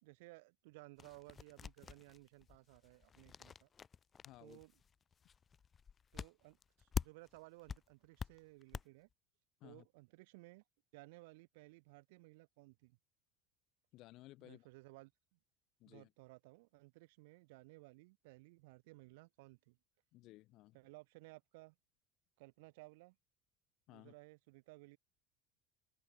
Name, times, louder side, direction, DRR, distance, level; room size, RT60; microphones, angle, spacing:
voice 1, 0.0-3.7 4.4-4.7 6.1-9.1 9.6-10.6 10.9-13.0 14.4-15.4 15.8-19.8 20.7-21.7 22.4-23.2 23.9-25.0, right 24 dB, 80° right, 2.6 m, -59 dB
sound 1, 1.0-7.4 7.7-8.8, left 6 dB, 25° left, 0.4 m, -45 dB
voice 2, 4.2-4.6 9.6-9.8 13.9-14.7 15.8-16.1 20.1-20.8 23.9-24.1, left 18 dB, 50° left, 6.7 m, -58 dB
open air
cardioid pair, 145°, 0 cm